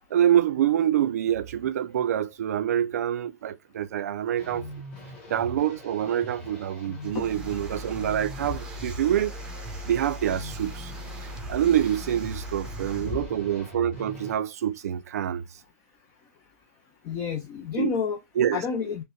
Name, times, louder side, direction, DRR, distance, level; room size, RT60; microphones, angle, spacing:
voice 1, 0.1-4.7 5.3-9.3 9.8-10.9 11.5-15.5 17.8-17.9 18.4-18.6, right 10 dB, 85° right, 0.5 m, -26 dB
sound 1, 4.4-14.3, equal, 10° left, 1.2 m, -42 dB
sound 2, 7.0-13.2, equal, 10° right, 0.7 m, -39 dB
voice 2, 17.1-18.2 18.5-19.0, left 6 dB, 30° left, 0.5 m, -29 dB
5.2 x 2.2 x 2.3 m
supercardioid pair, 160°, 8 cm